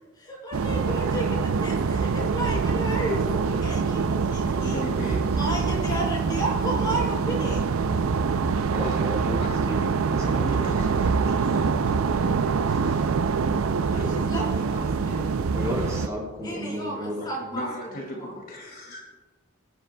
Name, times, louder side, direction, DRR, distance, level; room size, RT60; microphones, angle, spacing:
voice 1, 0.2-4.8 5.3-7.6 13.9-15.3 16.4-17.6 18.0-18.3, right 1 dB, 20° left, -5 dB, 4.1 m, -32 dB
sound 1, 0.5-16.1, right 5 dB, 85° right, 0.5 m, -25 dB
voice 2, 4.4-5.9 7.9-9.7 10.2-13.1 14.6-14.7 17.2-19.0, equal, 45° left, -2 dB, 2.6 m, -39 dB
voice 3, 8.7-10.6 15.5-17.2, equal, 15° right, -4 dB, 4.0 m, -33 dB
23.0 x 10.0 x 2.3 m, 1.3 s
head